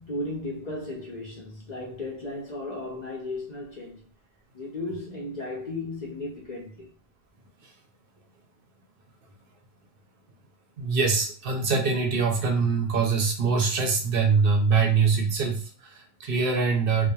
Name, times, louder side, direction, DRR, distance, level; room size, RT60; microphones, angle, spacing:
voice 1, 0.0-4.0 4.5-6.9, left 2 dB, 50° left, 0.6 m, -35 dB
voice 2, 10.8-17.1, right 5 dB, 65° right, 0.7 m, -23 dB
2.9 x 2.1 x 2.2 m
omnidirectional pair, 1.1 m